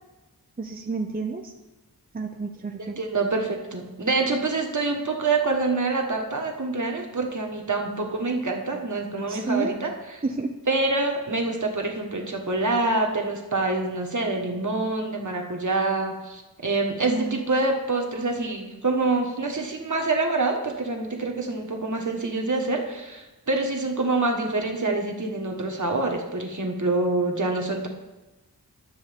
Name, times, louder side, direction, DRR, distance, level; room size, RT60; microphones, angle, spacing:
voice 1, 0.6-1.5 2.1-3.0 9.3-9.7 10.2-10.5 17.1-17.4, right 3 dB, 25° right, 3 dB, 0.5 m, -30 dB
voice 2, 2.8-10.2 10.7-27.9, right 3 dB, 50° right, 2 dB, 1.4 m, -26 dB
12.0 x 6.9 x 3.5 m, 1.1 s
wide cardioid pair, 65°, 38 cm